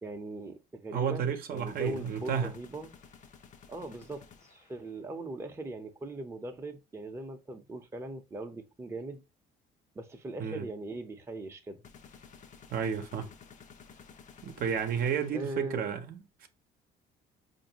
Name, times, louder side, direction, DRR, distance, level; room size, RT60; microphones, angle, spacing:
voice 1, 0.0-2.9 3.7-9.2 9.9-11.8 15.3-15.9, right 2 dB, 15° right, 0.7 m, -40 dB
voice 2, 0.9-2.5 10.4-10.6 12.7-13.3 14.4-16.5, right 7 dB, 60° right, 0.7 m, -32 dB
sound 1, 1.6-4.9 11.8-15.9, left 6 dB, 45° left, 0.7 m, -54 dB
4.6 x 2.6 x 2.8 m
cardioid pair, 110°, 17 cm